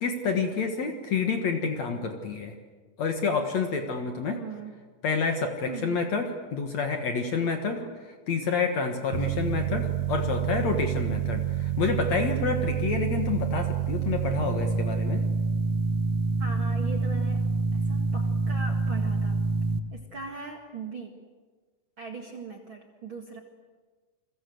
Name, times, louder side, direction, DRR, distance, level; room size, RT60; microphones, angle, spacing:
voice 1, 0.0-2.5 3.0-4.4 5.0-7.8 8.3-15.2, left 5 dB, 55° left, 5 dB, 2.3 m, -28 dB
voice 2, 4.2-4.7 5.7-6.0 7.7-8.0 9.3-9.5 16.4-17.4 17.7-19.4 19.9-21.1 22.0-23.4, right 4 dB, 40° right, 3 dB, 2.0 m, -40 dB
sound 1, 9.1-19.8, right 5 dB, 90° right, 1.3 m, -27 dB
29.0 x 22.0 x 7.9 m, 1.4 s
omnidirectional pair, 4.6 m